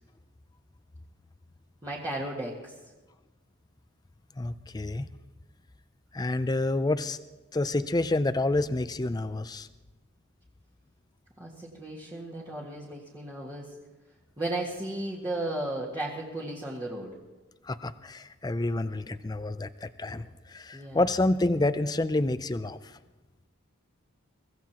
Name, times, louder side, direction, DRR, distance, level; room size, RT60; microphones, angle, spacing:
voice 1, 1.8-2.7 11.4-13.6 14.4-17.1 20.7-21.0, right 1 dB, 20° right, -7 dB, 1.9 m, -35 dB
voice 2, 4.4-5.1 6.1-7.2 7.5-9.7 17.6-22.8, left 2 dB, 20° left, 12 dB, 0.4 m, -28 dB
23.0 x 16.5 x 3.0 m, 1.2 s
head